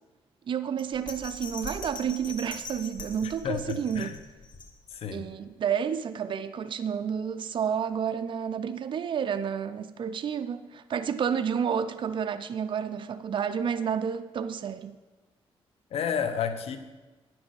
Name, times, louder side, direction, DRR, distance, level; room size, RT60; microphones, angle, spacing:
voice 1, 0.5-4.1 5.1-14.9, right 7 dB, 55° right, 0.5 m, -30 dB
Bell, 0.8-5.1 5.5-5.6, left 3 dB, 50° left, 1.4 m, -42 dB
voice 2, 3.4-4.2 4.9-5.3 15.9-16.8, left 7 dB, 75° left, 0.9 m, -31 dB
9.6 x 6.1 x 6.4 m
cardioid pair, 85°, 10 cm